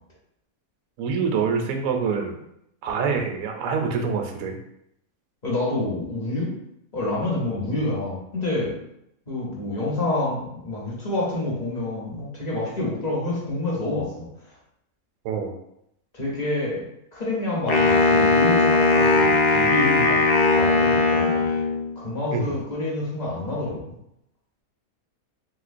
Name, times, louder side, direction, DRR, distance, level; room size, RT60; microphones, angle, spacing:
voice 1, 1.0-2.4 2.8-4.6 15.2-15.5 22.3-22.5, right 5 dB, 70° right, 3 dB, 0.9 m, -25 dB
voice 2, 5.4-6.5 6.9-8.8 9.3-14.3 16.1-16.9 17.1-20.2 20.5-21.5 22.0-23.8, left 2 dB, 35° left, -5 dB, 0.8 m, -28 dB
Wind instrument woodwind instrument, 17.7-21.9, left 3 dB, 85° left, 0.5 m, -19 dB
3.2 x 3.0 x 2.5 m, 0.78 s
omnidirectional pair, 1.6 m